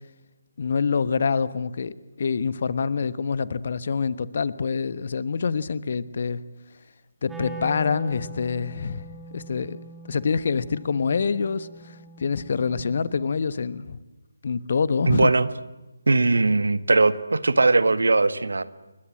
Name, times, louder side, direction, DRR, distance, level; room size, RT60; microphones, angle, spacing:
voice 1, 0.6-6.4 7.2-9.1 9.3-9.8 10.1-14.0 14.4-15.3, left 5 dB, 45° left, 16 dB, 1.2 m, -26 dB
Wind instrument woodwind instrument, 7.2-13.3, right 1 dB, 5° right, 3.2 m, -42 dB
voice 2, 15.1-15.5 16.1-18.6, right 3 dB, 60° right, 13 dB, 1.6 m, -20 dB
30.0 x 22.5 x 7.6 m, 1.1 s
figure-of-eight pair, 150°, 0 cm